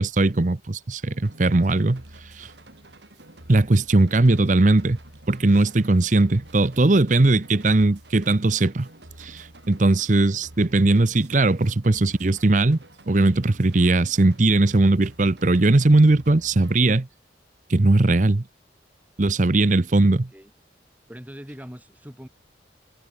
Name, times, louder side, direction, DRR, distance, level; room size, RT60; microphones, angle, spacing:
voice 1, 0.0-2.0 2.4-2.5 3.5-5.0 5.3-8.9 9.2-12.8 13.1-17.1 17.7-18.4 19.2-20.3, right 2 dB, 45° right, 0.8 m, -19 dB
sound 1, 1.3-16.8, right 1 dB, 75° right, 5.1 m, -48 dB
voice 2, 19.6-20.5 21.1-22.3, equal, 10° right, 4.4 m, -43 dB
head